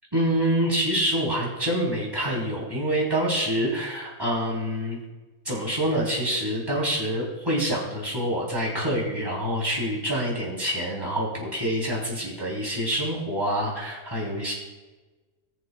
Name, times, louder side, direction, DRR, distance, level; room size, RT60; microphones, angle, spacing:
voice 1, 0.1-5.0 5.5-14.5, equal, 15° right, -4 dB, 3.5 m, -26 dB
20.5 x 7.0 x 2.3 m, 1.2 s
omnidirectional pair, 1.7 m